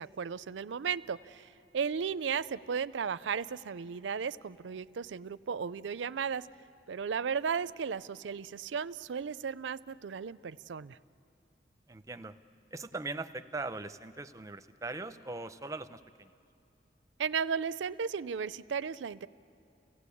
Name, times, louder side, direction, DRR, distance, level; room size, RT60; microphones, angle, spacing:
voice 1, 0.0-1.5 1.7-6.5 6.9-11.0 17.2-19.3, right 6 dB, 85° right, 17 dB, 0.5 m, -35 dB
voice 2, 11.9-12.3 12.7-16.4, right 3 dB, 20° right, 11 dB, 0.6 m, -40 dB
29.5 x 16.5 x 8.4 m, 2.7 s
head